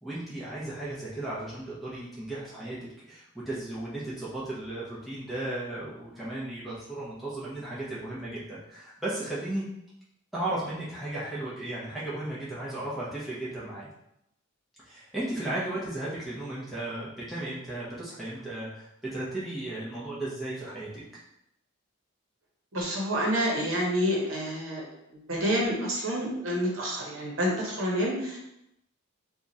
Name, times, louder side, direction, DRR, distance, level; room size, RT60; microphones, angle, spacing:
voice 1, 0.0-2.8 3.1-9.7 10.3-13.9 14.8-21.0, right 1 dB, ahead, -9 dB, 0.7 m, -35 dB
voice 2, 22.7-24.8 25.1-28.4, equal, 65° right, -3 dB, 1.0 m, -28 dB
2.9 x 2.4 x 4.0 m, 0.81 s
head